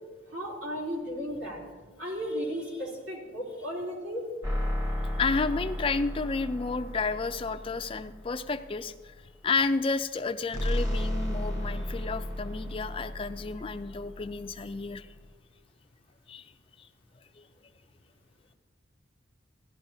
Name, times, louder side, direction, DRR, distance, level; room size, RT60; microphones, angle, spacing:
voice 1, 0.3-1.6 2.0-4.2, equal, 75° right, -4 dB, 3.1 m, -34 dB
sound 1, 4.4-9.0 10.5-15.3, left 1 dB, 15° right, 0.9 m, -34 dB
voice 2, 5.2-9.1 9.4-15.1 16.3-16.5 16.8-16.9 17.4-17.5, left 4 dB, 25° left, 10 dB, 0.4 m, -31 dB
15.5 x 11.5 x 2.7 m, 1.4 s
head